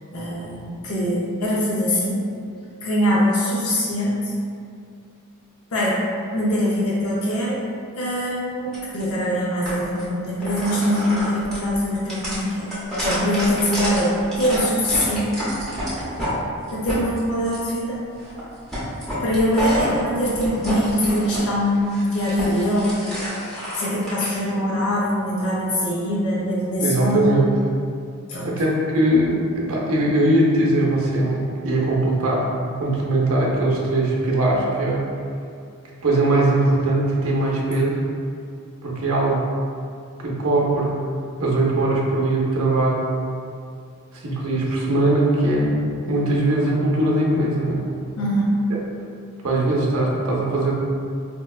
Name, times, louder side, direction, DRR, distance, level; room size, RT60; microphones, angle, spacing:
voice 1, 0.1-2.2 2.8-4.3 5.7-6.0 6.3-7.6 8.0-12.7 13.0-15.4 16.7-18.0 19.2-23.3 23.8-27.3 28.3-28.5 48.2-48.6, equal, 65° left, -6 dB, 0.6 m, -23 dB
sound 1, 8.7-9.0 9.6-10.0 10.4-16.3 16.7-17.7 18.2-18.4 18.7-21.4 21.7-24.3, equal, 5° left, 0.7 m, -28 dB
voice 2, 26.8-27.5 28.4-32.5 32.8-35.1 36.0-38.0 38.8-39.4 40.2-41.0 41.4-43.1 44.1-45.8 46.1-47.8 49.4-50.7, right 1 dB, 65° right, -4 dB, 0.6 m, -20 dB
4.3 x 2.1 x 2.3 m, 2.4 s
head